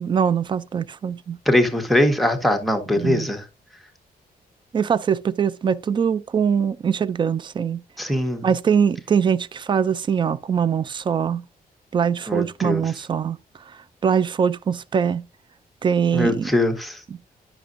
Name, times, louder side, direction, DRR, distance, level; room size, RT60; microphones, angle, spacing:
voice 1, 0.0-1.4 3.0-3.3 4.7-7.8 8.4-11.4 11.9-13.4 14.0-15.2 15.8-16.5, right 7 dB, 30° right, 0.3 m, -22 dB
voice 2, 1.5-3.5 8.0-8.5 12.3-12.8 16.1-17.0, left 1 dB, ahead, 1.0 m, -21 dB
10.0 x 6.0 x 2.5 m
wide cardioid pair, 160°, 16 cm